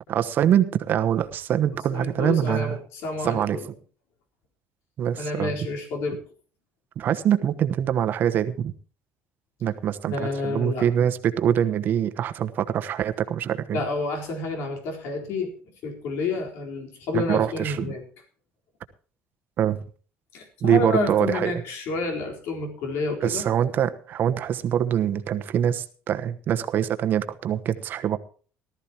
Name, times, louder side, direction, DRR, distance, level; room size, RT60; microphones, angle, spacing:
voice 1, 0.1-2.8 3.2-3.6 5.0-5.5 7.0-8.7 9.6-13.8 17.1-17.9 19.6-19.8 20.6-21.5 23.2-28.2, right 9 dB, 45° right, 9 dB, 1.1 m, -24 dB
voice 2, 1.9-3.7 5.2-6.2 10.1-10.9 13.7-15.5 15.8-18.0 20.3-23.5, left 3 dB, 65° left, 2 dB, 4.1 m, -29 dB
18.5 x 13.0 x 2.9 m, 0.40 s
cardioid pair, 150°, 5 cm